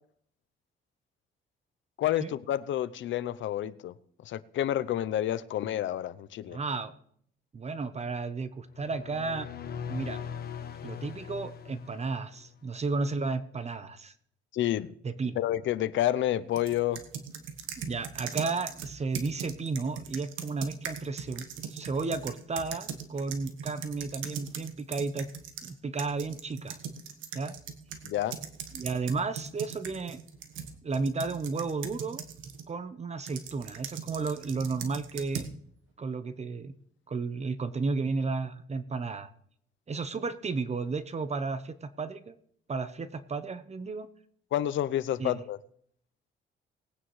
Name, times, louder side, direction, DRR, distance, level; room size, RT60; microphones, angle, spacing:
voice 1, 2.0-3.9 4.2-6.6 14.5-14.9 15.4-17.0 28.0-28.4 44.5-45.6, left 12 dB, 75° left, 0.7 m, -29 dB
voice 2, 6.5-6.9 7.5-9.5 9.9-10.2 10.8-14.1 15.0-15.4 17.8-25.3 25.6-26.8 27.3-27.6 28.7-30.2 30.8-32.2 32.7-35.5 36.0-36.7 37.1-39.3 39.9-42.4 42.7-44.1 45.2-45.4, right 4 dB, 35° right, 0.9 m, -33 dB
sound 1, 8.7-12.6, left 8 dB, 50° left, 1.2 m, -40 dB
sound 2, 16.6-25.7 26.0-32.7 33.3-35.5, right 7 dB, 90° right, 1.4 m, -40 dB
20.0 x 9.1 x 3.2 m
cardioid pair, 90°, 20 cm